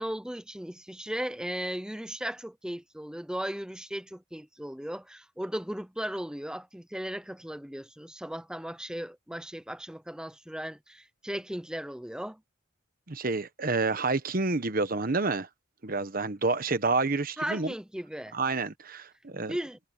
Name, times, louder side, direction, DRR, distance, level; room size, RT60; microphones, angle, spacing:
voice 1, 0.0-12.4 17.4-18.4 19.3-19.8, equal, 5° right, 0.7 m, -36 dB
voice 2, 13.1-15.5 15.8-17.7 18.3-19.6, right 3 dB, 45° right, 1.1 m, -29 dB
head